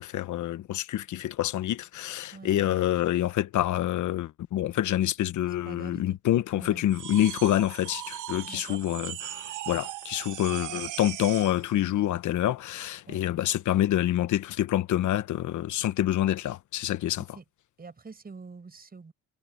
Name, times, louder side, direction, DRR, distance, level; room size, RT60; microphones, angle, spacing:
voice 1, 0.0-17.2, left 12 dB, 75° left, 1.2 m, -27 dB
voice 2, 2.3-2.8 5.4-6.2 6.6-6.9 8.5-8.8 10.7-10.8 13.1-13.2 17.2-17.4 17.8-19.1, right 4 dB, 30° right, 5.9 m, -46 dB
sound 1, 6.9-11.6, right 14 dB, 80° right, 1.2 m, -38 dB
cardioid pair, 90°, 30 cm